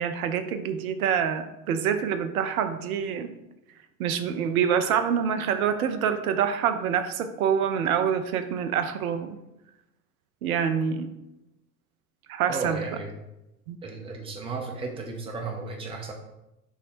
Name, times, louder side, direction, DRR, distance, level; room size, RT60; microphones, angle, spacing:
voice 1, 0.0-3.4 4.0-9.4 10.4-11.1 12.3-12.8 13.7-13.8, right 8 dB, 60° right, 9 dB, 0.6 m, -26 dB
voice 2, 12.5-13.1 13.8-16.1, right 3 dB, 10° right, 1 dB, 0.5 m, -34 dB
5.8 x 2.1 x 4.2 m, 0.92 s
figure-of-eight pair, 85°, 49 cm